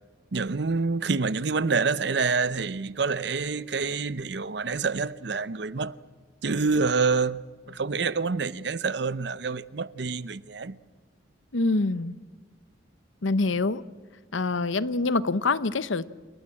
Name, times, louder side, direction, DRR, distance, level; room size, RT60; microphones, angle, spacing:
voice 1, 0.3-5.9 6.4-10.8, right 4 dB, 60° right, 0.7 m, -27 dB
voice 2, 11.5-12.1 13.2-13.8 14.3-16.1, left 3 dB, 85° left, 0.9 m, -25 dB
27.5 x 21.0 x 7.6 m
head